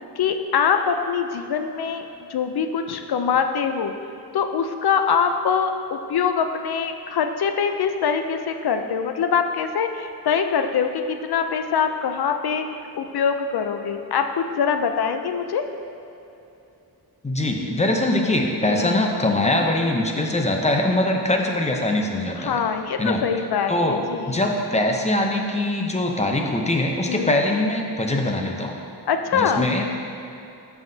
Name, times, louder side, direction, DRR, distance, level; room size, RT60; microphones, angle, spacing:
voice 1, 0.2-3.9 4.3-12.7 12.9-15.6 18.7-18.9 22.4-24.2 27.1-27.3 29.1-29.7, left 6 dB, 70° left, 7 dB, 0.5 m, -23 dB
voice 2, 17.2-22.6 23.0-23.2 23.7-28.7 29.3-29.8, left 1 dB, 15° left, 2 dB, 0.6 m, -22 dB
12.5 x 5.7 x 2.7 m, 2.8 s
wide cardioid pair, 165°, 39 cm